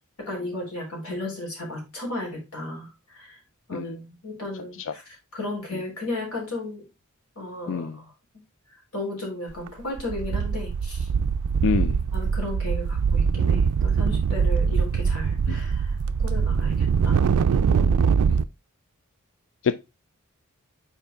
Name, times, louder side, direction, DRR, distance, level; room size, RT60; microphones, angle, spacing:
voice 1, 0.2-3.4 3.7-6.9 7.4-8.0 8.9-11.1 12.1-15.9 16.2-17.9, left 2 dB, 80° left, 3.6 m, -35 dB
sound 1, 9.5-9.7 10.0-18.4, right 6 dB, 80° right, 0.4 m, -23 dB
voice 2, 11.6-12.0 15.5-15.6 19.6-19.7, left 6 dB, 60° left, 0.4 m, -25 dB
5.6 x 4.5 x 3.8 m
head